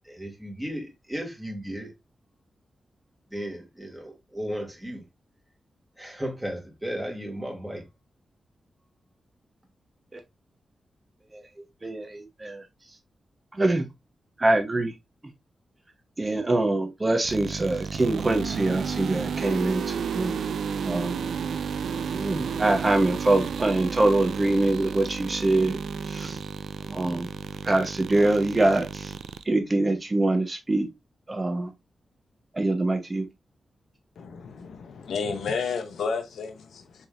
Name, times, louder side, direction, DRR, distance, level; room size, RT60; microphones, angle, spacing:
voice 1, 0.0-1.9 3.3-5.0 6.0-7.9, equal, 10° right, 2.2 m, -35 dB
voice 2, 11.8-12.6 13.5-13.8 14.4-14.9 16.2-20.3 20.8-21.2 22.1-25.8 26.0-26.4 26.9-27.3 27.6-29.1 29.4-30.9 31.3-31.7 32.5-33.3, right 2 dB, 30° right, 1.0 m, -24 dB
sound 1, 17.2-29.4, right 6 dB, 80° right, 0.3 m, -32 dB
voice 3, 34.2-37.1, left 5 dB, 85° left, 0.7 m, -32 dB
4.2 x 3.6 x 2.6 m
cardioid pair, 50°, 0 cm